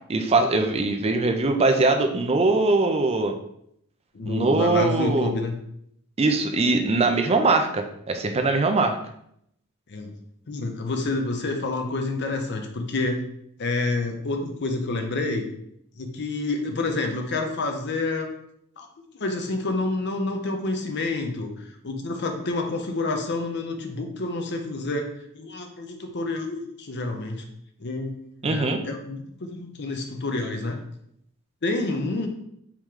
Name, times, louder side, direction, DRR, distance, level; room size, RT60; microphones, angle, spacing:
voice 1, 0.1-3.3 4.2-5.3 6.2-9.0 28.4-28.8, right 3 dB, 25° right, 5 dB, 0.5 m, -21 dB
voice 2, 4.1-5.6 9.9-10.1 10.5-13.2 13.6-15.5 15.9-18.3 18.8-27.4 27.8-30.8 31.6-32.3, left 2 dB, 50° left, 4 dB, 0.7 m, -28 dB
4.7 x 3.1 x 3.7 m, 0.73 s
head